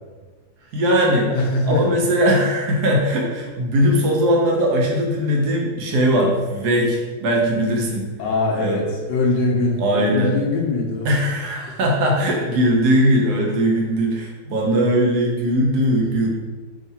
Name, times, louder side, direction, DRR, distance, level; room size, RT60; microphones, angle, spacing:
voice 1, 0.7-1.3 1.6-8.1 8.6-8.8 9.8-10.3 11.0-16.3, equal, 75° right, -1 dB, 1.3 m, -19 dB
voice 2, 1.3-2.0 8.2-11.1, left 2 dB, 85° left, -1 dB, 1.3 m, -22 dB
3.6 x 2.4 x 4.0 m, 1.4 s
omnidirectional pair, 1.9 m